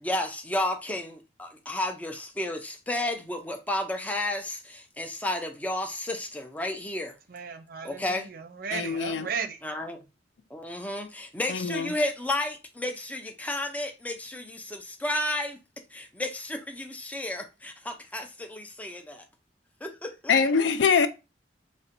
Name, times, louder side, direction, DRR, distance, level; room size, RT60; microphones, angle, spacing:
voice 1, 0.0-7.1 7.8-8.3 9.6-10.0 10.5-15.6 15.9-19.2 19.8-20.3, left 1 dB, 10° left, 0.4 m, -32 dB
voice 2, 7.3-9.6, right 6 dB, 55° right, 0.5 m, -35 dB
voice 3, 8.7-9.3 11.5-11.9 20.3-21.1, left 5 dB, 85° left, 0.4 m, -23 dB
4.1 x 2.1 x 2.6 m
head